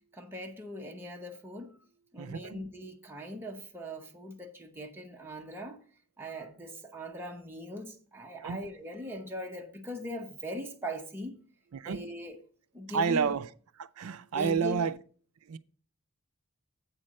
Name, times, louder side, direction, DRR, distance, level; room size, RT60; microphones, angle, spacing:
voice 1, 0.1-1.8 2.1-5.8 6.2-11.4 11.8-12.4 12.7-13.3 14.3-14.8, equal, 10° right, 0.8 m, -40 dB
voice 2, 2.2-2.7 8.4-8.7 11.7-12.1 12.9-13.5 13.8-15.0 15.5-15.6, right 6 dB, 70° right, 0.4 m, -30 dB
7.9 x 4.4 x 6.3 m
head